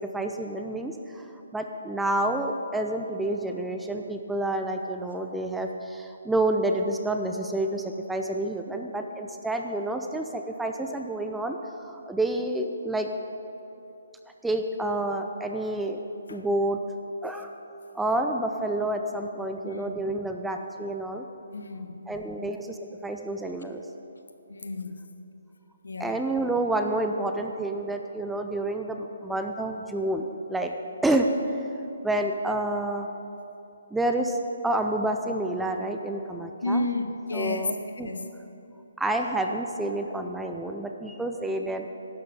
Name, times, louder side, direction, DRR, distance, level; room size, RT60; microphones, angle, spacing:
voice 1, 0.1-1.3 1.5-11.6 11.8-13.1 14.4-16.0 16.3-16.8 17.2-17.5 17.9-21.2 22.1-22.8 23.0-23.8 26.0-30.7 31.0-31.3 32.0-33.1 33.9-34.4 34.6-36.9 37.3-37.7 38.0-38.1 39.0-41.9, right 1 dB, 5° right, 4 dB, 0.6 m, -29 dB
voice 2, 19.6-19.9 21.5-22.0 22.4-22.5 24.5-25.0 25.8-26.2 36.6-37.8 38.0-38.3, left 2 dB, 65° left, 7 dB, 1.3 m, -31 dB
16.0 x 12.0 x 5.0 m, 2.9 s
figure-of-eight pair, 140°, 0 cm